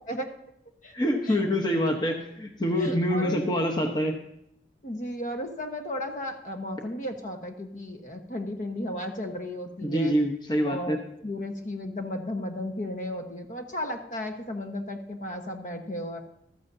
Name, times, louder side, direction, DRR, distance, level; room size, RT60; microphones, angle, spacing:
voice 1, 0.9-4.2 9.8-11.0, equal, 25° left, 1 dB, 1.0 m, -26 dB
voice 2, 2.7-3.4 4.8-10.1 10.6-16.2, left 1 dB, 45° left, 4 dB, 1.2 m, -34 dB
14.5 x 13.5 x 2.7 m, 0.78 s
head